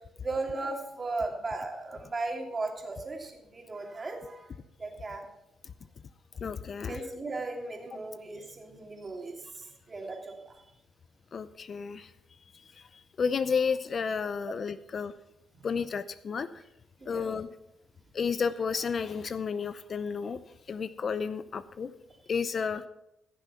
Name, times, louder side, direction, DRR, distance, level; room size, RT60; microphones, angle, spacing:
voice 1, 0.2-4.4 4.8-5.3 6.8-9.3 9.9-10.5 17.0-17.3, right 3 dB, 30° right, 2 dB, 2.8 m, -36 dB
voice 2, 6.4-7.0 11.3-12.1 13.2-15.1 15.6-16.5 17.1-17.5 18.1-20.4 20.7-21.9 22.3-22.9, left 6 dB, 45° left, 14 dB, 0.6 m, -31 dB
15.5 x 7.0 x 5.7 m, 0.85 s
cardioid pair, 90°, 0 cm